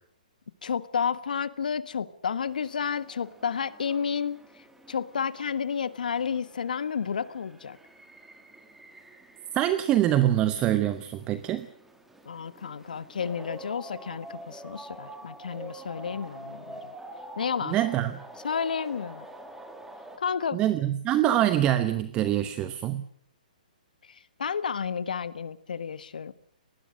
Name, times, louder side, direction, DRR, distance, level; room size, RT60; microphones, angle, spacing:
voice 1, 0.6-4.4 4.9-7.8 12.2-16.9 17.4-17.8 18.4-19.2 20.2-20.6 24.1-26.3, left 6 dB, 75° left, 15 dB, 1.5 m, -31 dB
sound 1, 2.5-20.2, right 1 dB, 5° right, 2.1 m, -47 dB
voice 2, 9.5-11.7 17.6-18.2 20.5-23.0, right 12 dB, 20° right, 12 dB, 0.9 m, -25 dB
26.0 x 19.5 x 6.5 m, 0.63 s
hypercardioid pair, 155°, 5 cm